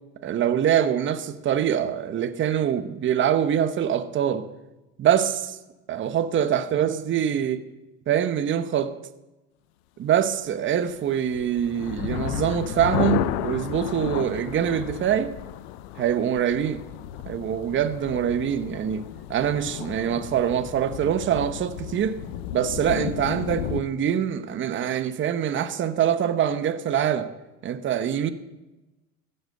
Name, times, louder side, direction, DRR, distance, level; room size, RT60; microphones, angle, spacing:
voice 1, 0.2-4.5 5.0-5.6 5.9-7.6 8.1-8.9 10.0-15.3 16.0-16.8 17.3-19.0 19.3-22.2 22.5-27.3 27.6-28.3, right 9 dB, 40° right, 1.0 m, -24 dB
sound 1, 11.0-23.8, left 12 dB, 85° left, 0.7 m, -33 dB
14.5 x 8.0 x 6.6 m
supercardioid pair, 110°, 31 cm